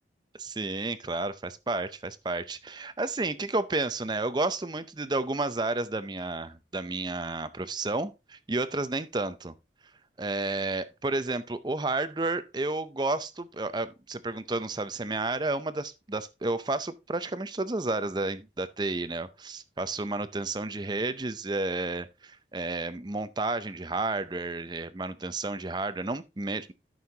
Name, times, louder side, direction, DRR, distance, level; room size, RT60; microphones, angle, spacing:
voice 1, 0.4-9.5 10.2-26.7, right 2 dB, 25° right, 0.5 m, -31 dB
13.0 x 6.4 x 2.8 m
head